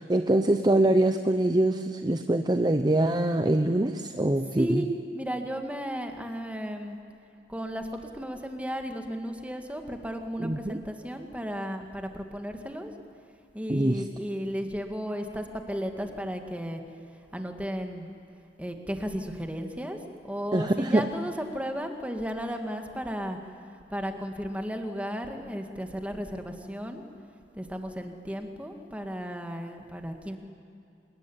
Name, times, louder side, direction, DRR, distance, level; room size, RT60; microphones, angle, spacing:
voice 1, 0.0-4.8 10.4-10.8 13.7-14.0 20.5-21.0, right 1 dB, 25° right, 8 dB, 0.8 m, -24 dB
voice 2, 4.6-7.0 7.5-12.9 13.5-16.8 17.3-18.1 18.6-20.0 20.2-23.4 23.9-27.0 27.5-30.4, equal, 10° right, 5 dB, 2.0 m, -34 dB
26.0 x 21.0 x 10.0 m, 2.6 s
head